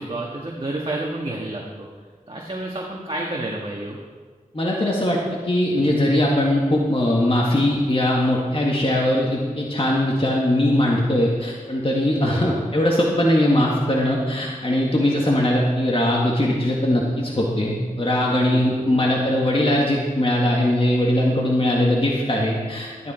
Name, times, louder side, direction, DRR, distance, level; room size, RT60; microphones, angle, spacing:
voice 1, 0.0-1.9 2.3-4.0 12.2-12.5 13.5-13.7 18.5-19.3, right 2 dB, 40° right, -2 dB, 1.7 m, -30 dB
voice 2, 4.5-23.1, left 1 dB, 40° left, -3 dB, 2.0 m, -20 dB
13.5 x 10.5 x 4.4 m, 1.5 s
wide cardioid pair, 50°, 15 cm